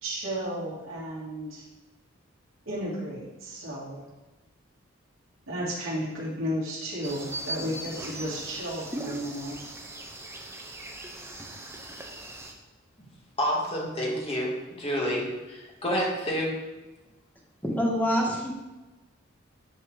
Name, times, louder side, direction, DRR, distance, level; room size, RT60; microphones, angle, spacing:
voice 1, 0.0-1.6 2.6-4.0 5.5-9.6, equal, 75° right, -7 dB, 2.8 m, -33 dB
sound 1, 7.0-12.5, right 1 dB, 15° right, 0.9 m, -39 dB
voice 2, 13.4-16.5, equal, 30° left, -2 dB, 1.9 m, -29 dB
voice 3, 17.6-18.5, equal, 10° left, -3 dB, 1.7 m, -25 dB
9.7 x 4.5 x 4.8 m, 1.1 s
head